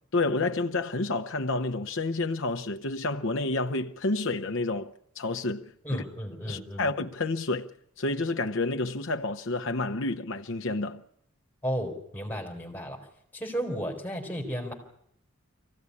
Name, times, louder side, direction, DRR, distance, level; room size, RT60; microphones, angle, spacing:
voice 1, 0.1-4.9 5.2-6.0 6.5-7.7 8.0-11.0, left 2 dB, 60° left, 0.8 m, -29 dB
voice 2, 5.8-6.9 11.6-13.0 13.3-14.7, equal, 10° left, 4.1 m, -33 dB
24.0 x 16.0 x 9.7 m
head